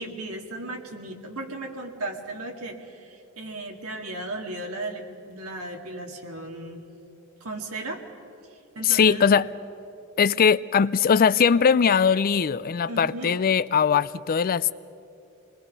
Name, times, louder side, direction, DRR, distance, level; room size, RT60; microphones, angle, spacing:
voice 1, 0.0-6.8 7.4-8.0 8.5-9.2 12.9-13.4, right 2 dB, 80° right, 2.2 m, -36 dB
voice 2, 8.8-9.5 10.2-14.7, left 6 dB, 40° left, 0.4 m, -20 dB
26.0 x 20.5 x 5.4 m
head